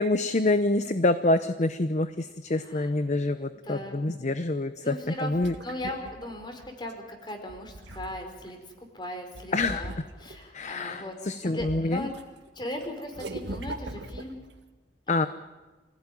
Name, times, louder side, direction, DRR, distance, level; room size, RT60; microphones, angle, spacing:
voice 1, 0.0-5.6 9.5-9.8 10.5-12.1 15.1-15.3, left 2 dB, 40° left, 11 dB, 0.8 m, -26 dB
voice 2, 2.6-2.9 3.2-3.3 3.7-4.0 4.8-5.4 5.6-8.6 8.9-11.1 11.4-12.1 12.5-14.4 15.1-15.3, left 1 dB, 25° left, 4 dB, 4.4 m, -38 dB
sound 1, 5.1-6.9 7.4-8.5 9.3-10.5 11.0-12.2 12.5-14.6, right 1 dB, 90° right, 1.9 m, -40 dB
26.5 x 16.5 x 9.9 m, 1.3 s
head